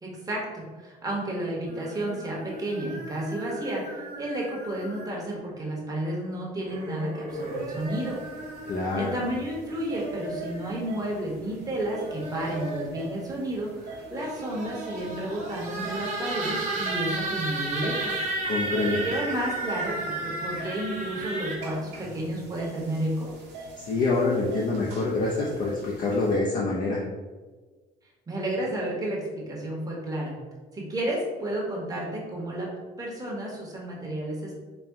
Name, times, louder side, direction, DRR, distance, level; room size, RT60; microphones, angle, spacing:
voice 1, 0.0-8.2 9.0-18.1 18.9-23.3 28.3-30.3 30.7-32.7 33.0-34.6, right 1 dB, 20° right, -3 dB, 1.1 m, -31 dB
sound 1, 1.7-5.4 6.6-8.9 9.7-10.7 11.8-13.0 14.0-21.6, right 2 dB, 45° right, 1.1 m, -34 dB
sound 2, 7.3-26.4, right 3 dB, 85° right, 0.9 m, -45 dB
voice 2, 8.6-9.1 18.4-19.0 23.8-27.0, left 3 dB, 55° left, -4 dB, 0.6 m, -26 dB
4.2 x 2.2 x 3.5 m, 1.4 s
cardioid pair, 110°, 17 cm